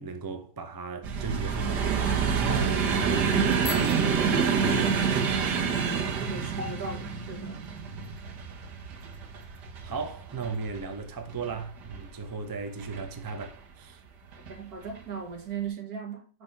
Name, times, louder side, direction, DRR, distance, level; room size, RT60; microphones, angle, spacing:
voice 1, 0.0-5.6 7.9-8.2 9.4-9.5 9.8-14.0, right 4 dB, 35° right, 0.3 m, -37 dB
sound 1, 1.0-12.1 12.8-13.5 14.3-14.5 14.8-15.0, right 6 dB, 80° right, 1.7 m, -28 dB
Bicycle bell, 3.6-5.3, left 6 dB, 40° left, 1.1 m, -42 dB
voice 2, 6.2-7.7 14.5-16.4, right 5 dB, 65° right, 2.0 m, -37 dB
6.2 x 3.6 x 5.7 m
omnidirectional pair, 1.8 m